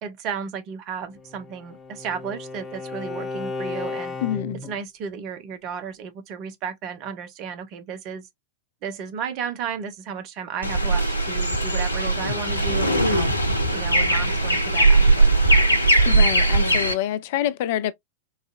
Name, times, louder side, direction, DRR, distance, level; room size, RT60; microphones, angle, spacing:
voice 1, 0.0-4.2 4.6-8.3 8.8-13.3 13.7-15.8, right 7 dB, 40° right, 0.7 m, -34 dB
Bowed string instrument, 1.2-4.8, left 3 dB, 20° left, 1.0 m, -34 dB
voice 2, 4.2-4.6 16.0-17.9, left 12 dB, 50° left, 0.3 m, -26 dB
sound 1, 10.6-16.9, right 2 dB, 85° left, 0.6 m, -19 dB
3.9 x 2.6 x 2.4 m
figure-of-eight pair, 90°, 0 cm